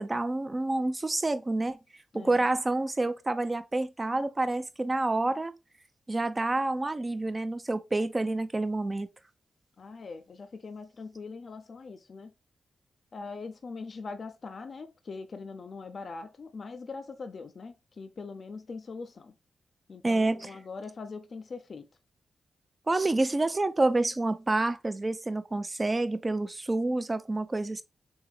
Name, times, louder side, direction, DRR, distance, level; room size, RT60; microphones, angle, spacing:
voice 1, 0.0-1.8 2.1-5.5 6.1-9.1 20.0-20.5 22.9-27.8, right 2 dB, 30° right, 0.6 m, -28 dB
voice 2, 2.1-2.4 9.8-12.3 13.1-19.3 19.9-21.9, left 4 dB, 60° left, 0.5 m, -42 dB
3.5 x 3.4 x 3.1 m
supercardioid pair, 45°, 0 cm